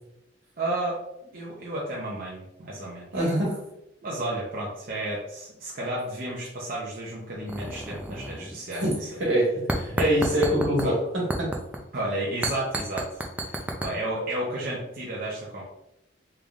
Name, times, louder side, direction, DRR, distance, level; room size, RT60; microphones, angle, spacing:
voice 1, 0.6-1.0 1.3-3.3 4.0-9.1 9.9-10.2 10.8-10.9 11.9-15.6, right 1 dB, 50° right, -5 dB, 0.7 m, -32 dB
voice 2, 3.1-3.6 8.7-8.9 9.2-11.5, equal, 80° right, -3 dB, 1.4 m, -24 dB
sound 1, 7.5-8.6 8.9-9.1 9.7-10.9 11.3-11.8 12.4-13.9, right 1 dB, 10° right, 0.3 m, -30 dB
3.8 x 3.3 x 2.3 m, 0.85 s
head